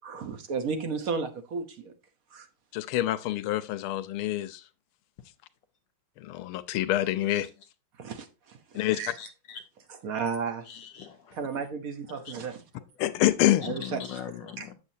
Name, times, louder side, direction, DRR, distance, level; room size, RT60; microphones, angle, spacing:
voice 1, 0.0-1.9 2.3-2.5 8.0-8.3 8.7-9.1 9.9-10.6 11.3-12.6 13.6-14.0 14.6-14.7, right 5 dB, 50° right, 1.2 m, -33 dB
voice 2, 2.7-4.6 6.2-7.5 8.7-9.0 13.0-13.7, left 14 dB, 85° left, 1.5 m, -26 dB
voice 3, 9.2-9.6 10.7-11.2 12.1-12.3 13.6-14.7, left 9 dB, 70° left, 1.2 m, -40 dB
8.1 x 7.0 x 2.7 m
omnidirectional pair, 2.3 m